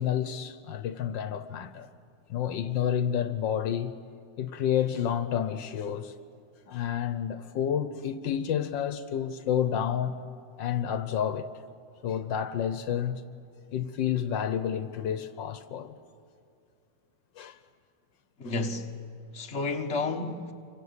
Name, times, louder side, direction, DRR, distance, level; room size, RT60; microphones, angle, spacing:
voice 1, 0.0-1.9 2.3-4.0 4.4-6.1 6.7-10.1 10.6-11.5 12.0-13.2 13.7-16.0 17.4-17.6, left 9 dB, 80° left, 1.7 m, -30 dB
voice 2, 18.4-18.9 19.3-20.5, left 3 dB, 40° left, 1.7 m, -31 dB
28.0 x 24.5 x 8.2 m
omnidirectional pair, 2.0 m